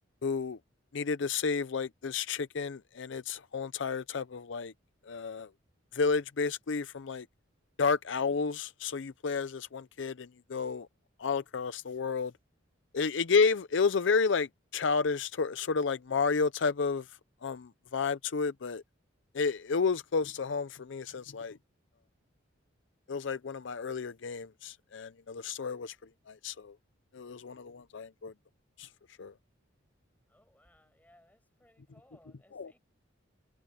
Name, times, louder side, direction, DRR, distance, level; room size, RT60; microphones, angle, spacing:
voice 1, 0.2-0.6 0.9-4.7 5.0-5.5 5.9-7.3 7.8-10.9 11.2-12.3 12.9-18.8 19.3-21.6 23.1-26.0 26.3-26.8 27.1-28.3 28.8-28.9 29.2-29.3 32.5-32.7, left 5 dB, 65° left, 0.5 m, -31 dB
voice 2, 30.3-32.8, left 1 dB, 10° left, 6.3 m, -64 dB
head